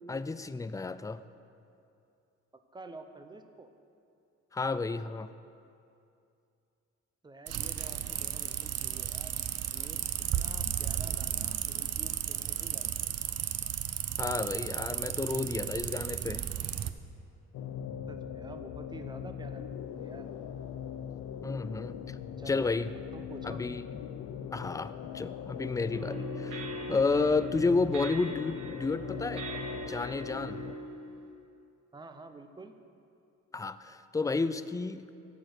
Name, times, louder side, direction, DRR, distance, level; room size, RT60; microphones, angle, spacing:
voice 1, 0.1-1.2 4.5-5.3 14.2-16.4 21.4-22.2 22.5-22.9 23.4-23.8 24.5-30.6 33.5-35.1, left 3 dB, 10° left, 13 dB, 0.3 m, -31 dB
voice 2, 2.7-3.7 7.2-9.3 9.7-10.0 10.3-13.0 18.1-20.3 22.4-22.7 23.1-23.6 31.9-32.7, right 2 dB, 15° right, 7 dB, 0.8 m, -48 dB
sound 1, 7.5-16.9, right 10 dB, 55° right, 0.6 m, -34 dB
sound 2, 17.5-30.7, left 8 dB, 85° left, 0.7 m, -41 dB
sound 3, 25.9-31.3, right 2 dB, 90° right, 2.2 m, -41 dB
13.0 x 5.1 x 8.0 m, 2.5 s
cardioid pair, 95°, 30 cm